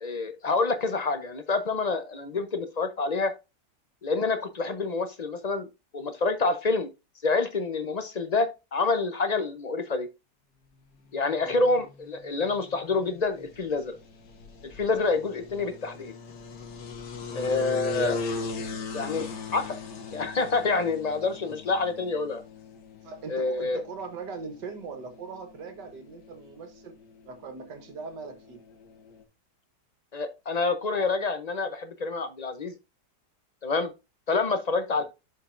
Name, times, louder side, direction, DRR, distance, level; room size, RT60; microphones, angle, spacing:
voice 1, 0.0-3.3 4.0-5.7 5.9-6.9 7.2-10.1 11.1-14.0 14.6-16.1 17.3-18.2 18.9-19.8 20.1-22.4 23.3-23.8 30.1-32.7 33.6-33.9 34.3-35.0, left 3 dB, 45° left, 0.5 m, -27 dB
sound 1, 11.2-29.2, left 4 dB, 80° left, 1.8 m, -40 dB
voice 2, 23.0-26.9 27.3-28.6 34.9-35.0, right 4 dB, 85° right, 2.0 m, -40 dB
11.0 x 5.2 x 2.5 m
omnidirectional pair, 1.8 m